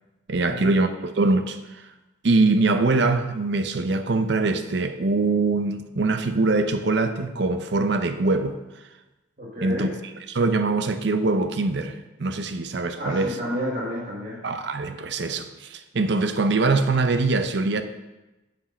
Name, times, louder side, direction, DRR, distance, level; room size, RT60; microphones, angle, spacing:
voice 1, 0.3-1.8 2.2-8.6 9.6-9.9 10.3-13.4 14.4-17.8, right 3 dB, 60° right, 0.6 m, -23 dB
voice 2, 9.4-9.9 13.0-14.4, equal, 45° right, 1.6 m, -30 dB
8.6 x 5.2 x 5.3 m
head